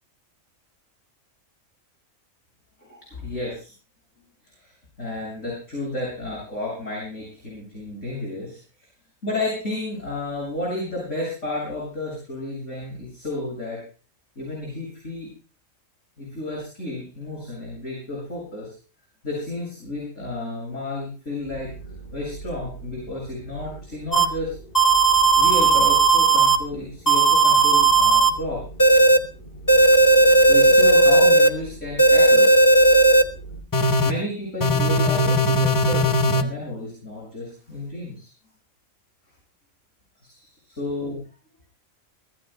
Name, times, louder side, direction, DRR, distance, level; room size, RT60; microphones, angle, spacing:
voice 1, 2.8-3.7 4.6-4.7 5.0-8.6 9.2-13.8 14.4-15.3 16.2-18.7 19.2-21.7 22.1-24.6 25.4-28.6 30.5-32.6 34.0-38.3 40.2-41.2, left 2 dB, 65° left, -4 dB, 7.3 m, -32 dB
sound 1, 21.4-33.6, right 3 dB, 40° left, 4.0 m, -41 dB
sound 2, 24.1-24.2 24.7-26.6 27.1-28.3 28.8-29.2 29.7-31.5 32.0-33.2 33.7-34.1 34.6-36.4, right 2 dB, 15° left, 0.9 m, -16 dB
24.0 x 18.0 x 2.2 m, 0.36 s
omnidirectional pair, 1.4 m